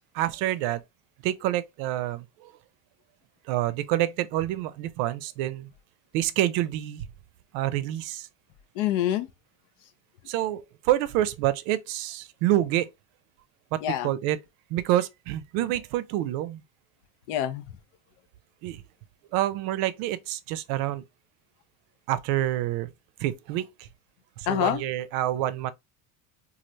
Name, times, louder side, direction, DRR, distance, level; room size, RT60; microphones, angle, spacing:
voice 1, 0.1-0.8 1.2-2.5 3.5-5.7 6.1-7.1 7.5-8.3 10.3-12.9 13.7-14.4 14.7-16.6 18.6-18.8 19.3-21.0 22.1-22.9 23.2-23.9 24.4-25.7, right 13 dB, 70° right, 0.5 m, -27 dB
voice 2, 8.8-9.3 13.8-14.1 17.3-17.6 24.5-24.8, left 11 dB, 70° left, 0.7 m, -26 dB
3.1 x 2.5 x 2.6 m
supercardioid pair, 115°, 38 cm